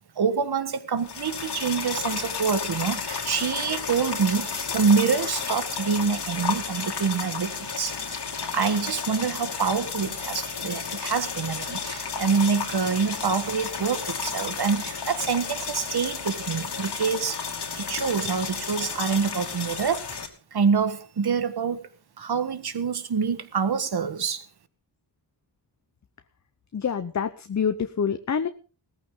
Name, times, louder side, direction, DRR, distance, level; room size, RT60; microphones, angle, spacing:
voice 1, 0.0-17.4 17.8-20.1 20.5-21.9 22.2-24.5, right 6 dB, 55° right, 1.5 m, -26 dB
sound 1, 1.0-20.3, left 5 dB, 60° left, 2.7 m, -32 dB
voice 2, 26.7-28.5, left 7 dB, 40° left, 0.8 m, -26 dB
17.5 x 14.0 x 3.8 m
wide cardioid pair, 125°, 45 cm